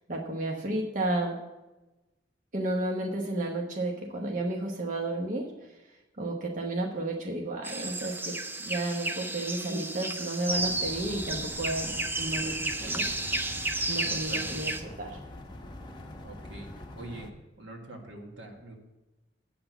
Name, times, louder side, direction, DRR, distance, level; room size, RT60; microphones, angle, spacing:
voice 1, 0.1-1.4 2.5-5.5 6.2-13.1 13.9-15.2, right 1 dB, 45° right, 0 dB, 1.1 m, -32 dB
sound 1, 7.6-14.8, right 2 dB, 10° right, 0.5 m, -32 dB
sound 2, 10.5-17.3, left 1 dB, 25° left, 0.9 m, -44 dB
voice 2, 16.2-17.3 17.6-18.8, right 2 dB, 80° right, 1 dB, 1.9 m, -44 dB
8.6 x 6.1 x 8.1 m, 1.1 s
head